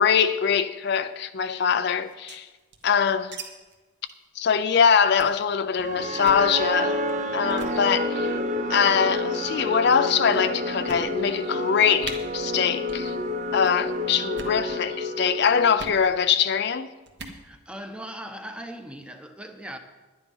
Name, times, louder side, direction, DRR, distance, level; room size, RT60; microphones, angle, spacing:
voice 1, 0.0-2.5 2.8-3.4 4.4-7.0 7.3-8.4 8.7-13.2 13.5-16.9, left 7 dB, 50° left, 0.4 m, -23 dB
sound 1, 2.0-3.4 3.7-3.8 4.1-4.3 4.6-4.8 5.2-5.4 6.1-6.5 7.1-7.2 7.5-7.8 8.7-9.1 9.8-9.9 10.3-10.4 10.9-11.4 11.7-11.8 12.0-12.2 12.8-13.1 13.3-13.7 14.2-14.6 15.8-16.0 17.1-17.4, right 4 dB, 55° right, 1.4 m, -40 dB
sound 2, 5.8-16.0, left 1 dB, 35° right, 0.7 m, -29 dB
voice 2, 17.4-19.8, equal, 5° right, 0.8 m, -39 dB
11.0 x 10.0 x 5.5 m
head